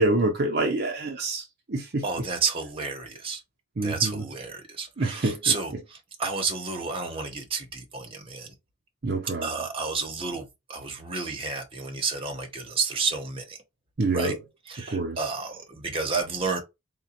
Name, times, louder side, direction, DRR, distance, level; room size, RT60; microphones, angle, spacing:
voice 1, 0.0-1.4 1.7-2.0 3.8-4.1 5.0-5.4 9.0-9.5 14.0-14.4 14.9-15.2, right 2 dB, 45° right, 0.6 m, -26 dB
voice 2, 2.0-3.4 3.8-8.5 9.4-10.4 10.7-13.6 14.1-14.4 14.7-16.6, right 4 dB, 25° right, 0.9 m, -30 dB
3.9 x 2.2 x 4.2 m
head